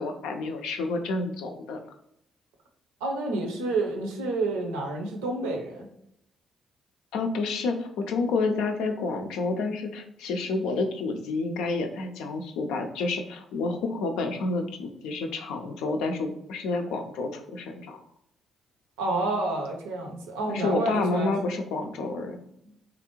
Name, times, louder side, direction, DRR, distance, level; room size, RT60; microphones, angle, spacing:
voice 1, 0.0-1.8 7.1-18.0 20.5-22.4, left 3 dB, 70° left, 5 dB, 0.4 m, -29 dB
voice 2, 3.0-5.9 19.0-21.6, right 2 dB, 80° right, 1 dB, 0.6 m, -29 dB
3.3 x 2.5 x 2.9 m, 0.75 s
hypercardioid pair, 45°, 0 cm